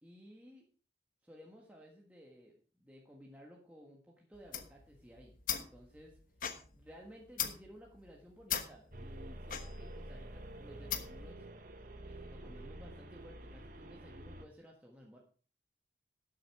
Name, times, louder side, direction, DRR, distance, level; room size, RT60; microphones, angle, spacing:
voice 1, 0.0-0.6 1.2-6.2 6.7-11.4 12.0-15.2, equal, 10° right, -2 dB, 1.5 m, -56 dB
sound 1, 4.3-11.3, left 8 dB, 50° left, 1.3 m, -41 dB
sound 2, 8.9-14.5, right 1 dB, 50° right, 1.3 m, -48 dB
12.5 x 7.9 x 4.8 m, 0.40 s
head